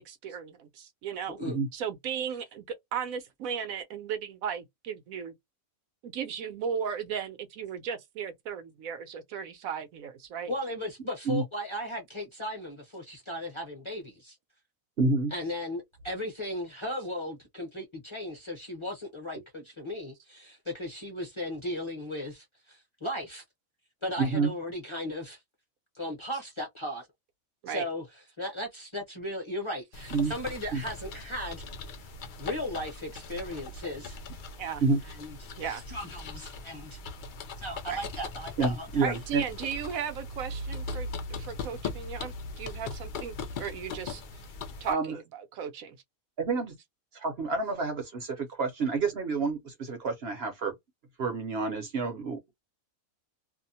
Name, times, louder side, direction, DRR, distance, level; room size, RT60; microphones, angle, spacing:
voice 1, 0.0-1.4 1.7-2.6 2.9-5.3 6.0-10.5 27.6-27.8 34.6-34.8 35.6-35.8 37.9-38.0 39.0-44.2 44.8-46.0, right 7 dB, 75° right, 1.0 m, -36 dB
voice 2, 1.3-1.6 10.5-14.3 15.3-23.4 24.0-25.4 25.9-27.1 27.7-28.0 28.4-31.6 32.4-34.2 35.0-35.4 35.7-37.0 37.6-39.1, left 1 dB, 25° left, 0.7 m, -36 dB
voice 3, 15.0-15.3 24.2-24.5 30.1-30.3 30.7-30.8 34.8-35.0 38.6-39.4 44.9-45.2 46.4-46.7 47.1-50.7 51.2-52.5, right 4 dB, 55° right, 0.8 m, -28 dB
sound 1, 29.9-44.9, left 3 dB, 75° left, 0.4 m, -40 dB
2.7 x 2.1 x 2.7 m
omnidirectional pair, 1.5 m